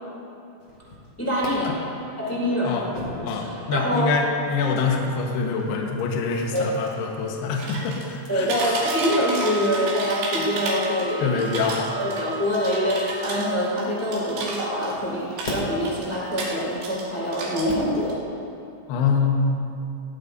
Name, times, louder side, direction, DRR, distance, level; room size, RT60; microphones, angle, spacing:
sound 1, 0.6-1.5 2.2-14.3 14.9-17.9, left 2 dB, 35° left, 2.4 m, -42 dB
voice 1, 1.2-1.8 2.2-2.8 3.4-4.2 6.5-6.7 8.3-11.6 11.9-18.2, equal, 5° left, -6 dB, 1.1 m, -25 dB
voice 2, 3.2-8.8 11.2-11.9 18.9-19.7, left 4 dB, 70° left, 0 dB, 2.8 m, -25 dB
sound 2, 7.6-8.1 8.4-11.1 11.4-15.0 15.3-17.1 17.3-18.1, right 3 dB, 85° right, 5.2 m, -32 dB
Wind instrument woodwind instrument, 8.6-13.8, right 2 dB, 85° left, 3.3 m, -36 dB
19.5 x 17.0 x 2.7 m, 2.7 s
omnidirectional pair, 5.8 m